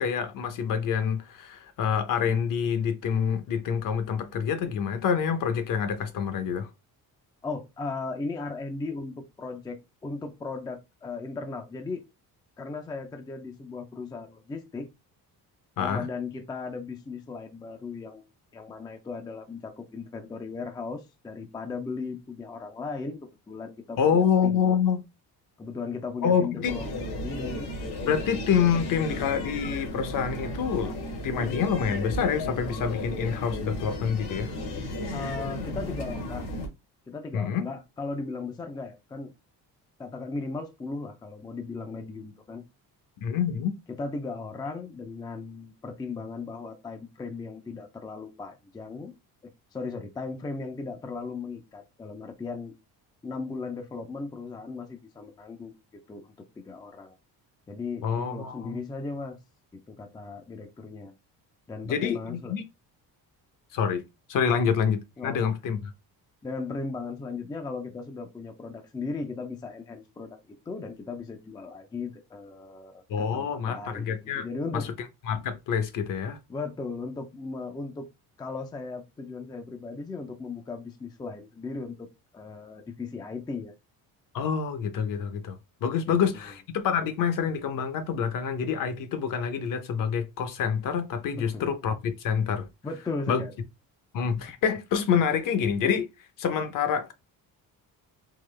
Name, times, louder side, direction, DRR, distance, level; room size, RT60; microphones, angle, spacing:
voice 1, 0.0-6.7 15.8-16.1 24.0-25.0 26.2-26.7 28.1-31.0 31.2-34.5 37.3-37.7 43.2-43.7 58.0-58.8 61.8-62.6 63.7-64.0 64.3-65.9 73.1-74.5 74.7-74.9 75.3-76.4 84.3-92.7 93.3-93.4 94.1-96.1 96.4-97.1, left 7 dB, 55° left, 0.7 m, -27 dB
voice 2, 7.4-12.0 12.6-14.9 15.8-18.2 18.5-24.8 25.6-27.7 35.1-36.5 37.1-39.3 40.0-42.6 43.9-49.1 49.7-52.7 53.2-55.7 56.1-56.3 56.7-57.1 57.7-59.4 59.7-61.1 61.7-62.6 64.5-64.6 65.2-65.5 66.4-70.4 70.7-74.9 76.5-78.1 78.4-82.1 82.3-83.7 86.1-86.5 91.3-91.6 92.8-93.5, left 4 dB, 10° left, 0.4 m, -37 dB
sound 1, 26.6-36.7, left 1 dB, 75° left, 1.4 m, -34 dB
3.8 x 2.8 x 3.2 m
cardioid pair, 165°, 38 cm